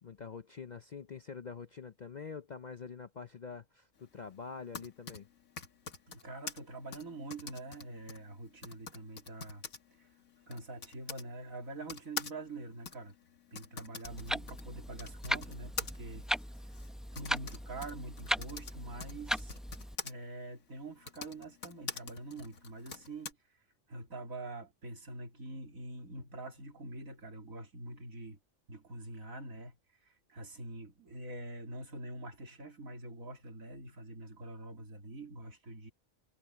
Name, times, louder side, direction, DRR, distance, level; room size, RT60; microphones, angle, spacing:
voice 1, 0.0-5.3, left 5 dB, 50° left, 0.5 m, -45 dB
Typing, 4.5-11.3 11.9-20.1 20.9-23.3, left 5 dB, 80° left, 2.1 m, -45 dB
voice 2, 6.1-9.6 10.0-10.1 10.5-13.2 13.5-16.3 17.1-19.6 20.0-23.4 23.9-28.4 28.7-29.8 30.0-35.9, right 2 dB, 80° right, 3.5 m, -45 dB
Clock, 14.0-20.0, equal, ahead, 0.6 m, -38 dB
omnidirectional pair, 1.4 m